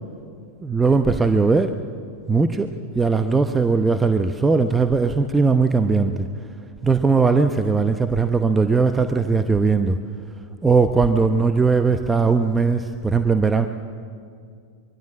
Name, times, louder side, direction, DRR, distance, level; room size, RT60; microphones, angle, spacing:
voice 1, 0.6-1.7 2.3-6.3 6.8-10.0 10.6-13.7, right 4 dB, 10° right, 8 dB, 0.9 m, -19 dB
24.0 x 22.5 x 7.5 m, 2.2 s
figure-of-eight pair, 90°, 0 cm